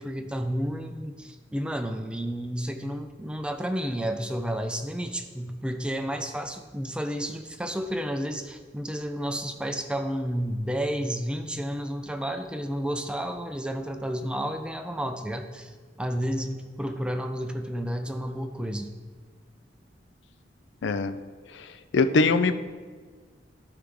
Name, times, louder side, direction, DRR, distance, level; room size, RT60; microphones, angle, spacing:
voice 1, 0.0-15.7 16.0-18.9, equal, 5° right, 7 dB, 0.4 m, -31 dB
voice 2, 20.8-21.1 21.9-22.5, left 3 dB, 70° left, 11 dB, 0.4 m, -21 dB
12.0 x 4.9 x 3.5 m, 1.5 s
head